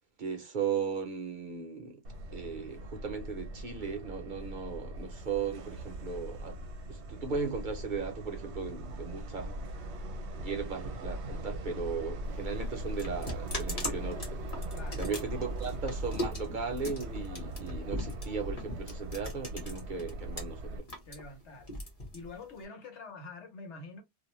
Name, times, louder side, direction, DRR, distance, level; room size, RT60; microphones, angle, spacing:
voice 1, 0.2-2.0 2.3-6.6 6.9-9.6 10.3-14.5 14.9-20.9, right 5 dB, 55° right, 0.7 m, -37 dB
Subway metro underground, 2.0-20.8, right 1 dB, 75° right, 0.9 m, -40 dB
sound 1, 12.2-20.4 20.7-22.7, left 1 dB, 35° left, 1.0 m, -39 dB
voice 2, 14.7-15.0 21.1-21.7 22.1-24.0, left 3 dB, 75° left, 1.1 m, -46 dB
2.5 x 2.1 x 3.0 m
omnidirectional pair, 1.2 m